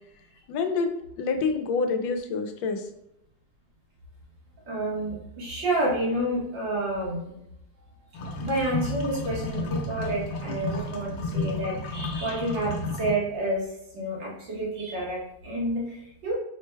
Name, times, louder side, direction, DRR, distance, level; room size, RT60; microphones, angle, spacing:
voice 1, 0.5-0.9 1.2-2.9, left 4 dB, 85° left, 6 dB, 1.3 m, -27 dB
voice 2, 4.7-7.4 7.8-7.9 8.4-13.7 13.9-16.3, right 1 dB, 90° right, -5 dB, 2.2 m, -29 dB
sound 1, 8.1-13.1, left 3 dB, 70° left, 1.1 m, -32 dB
4.4 x 2.2 x 4.4 m, 0.80 s
omnidirectional pair, 2.0 m